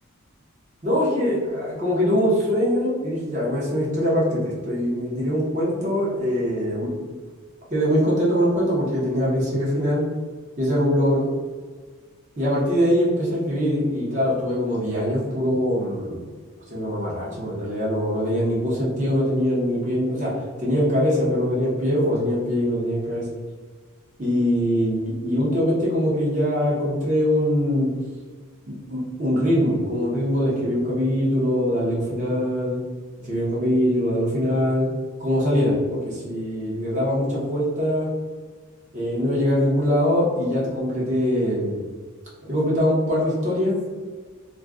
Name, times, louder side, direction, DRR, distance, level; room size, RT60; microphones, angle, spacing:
voice 1, 0.8-6.9 7.7-10.1 10.6-11.3 12.4-16.2 16.7-23.3 24.2-27.9 28.7-32.8 33.2-34.9 35.2-38.1 38.9-41.8 42.5-43.8, equal, 35° right, -6 dB, 0.7 m, -22 dB
2.4 x 2.2 x 3.5 m, 1.5 s
head